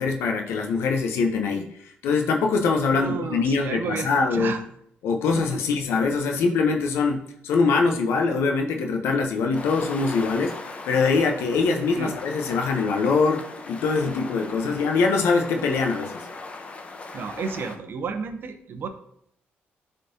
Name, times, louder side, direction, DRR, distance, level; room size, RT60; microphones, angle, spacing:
voice 1, 0.0-1.7 2.0-4.6 5.0-10.6 10.9-16.2, left 4 dB, 85° left, 3 dB, 0.7 m, -23 dB
voice 2, 2.9-4.6 5.3-5.6 11.9-12.1 14.6-14.8 17.1-18.9, right 5 dB, 55° right, 8 dB, 0.6 m, -32 dB
sound 1, 9.5-17.8, left 3 dB, 30° left, 0.7 m, -39 dB
10.5 x 3.7 x 2.7 m, 0.72 s
cardioid pair, 100°, 4 cm